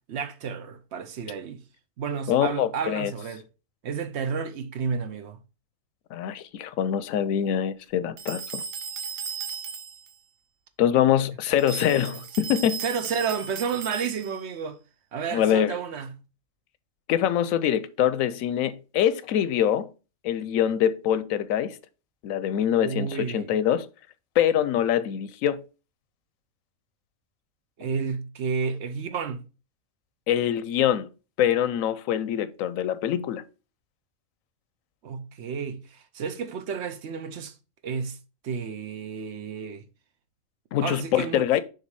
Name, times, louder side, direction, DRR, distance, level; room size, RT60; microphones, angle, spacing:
voice 1, 0.1-1.6 2.0-3.4 3.8-5.4 12.1-12.2 12.8-14.8 15.1-16.1 22.8-23.5 27.8-29.4 35.0-37.5 37.8-38.2 38.4-39.8 40.8-41.5, right 6 dB, 65° right, 0.9 m, -31 dB
voice 2, 2.3-3.1 6.1-8.6 10.8-12.8 15.3-15.8 17.1-19.9 20.2-21.8 22.2-23.9 24.4-25.6 30.3-31.1 31.4-33.4 40.7-41.6, left 10 dB, 85° left, 1.0 m, -24 dB
sound 1, 8.2-10.1 11.6-14.5, right 6 dB, 80° right, 1.2 m, -36 dB
6.6 x 3.4 x 4.6 m
omnidirectional pair, 1.4 m